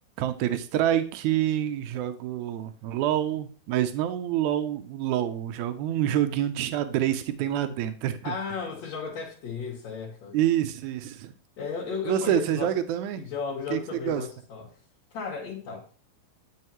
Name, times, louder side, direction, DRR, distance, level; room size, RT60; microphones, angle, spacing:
voice 1, 0.2-8.3 10.3-11.3 12.1-13.2 13.7-13.8 14.0-14.2, right 11 dB, 90° right, 9 dB, 1.7 m, -27 dB
voice 2, 8.2-10.4 11.6-12.7 13.2-14.7 15.1-15.9, left 6 dB, 55° left, -7 dB, 2.8 m, -34 dB
11.0 x 5.6 x 3.0 m, 0.39 s
omnidirectional pair, 4.2 m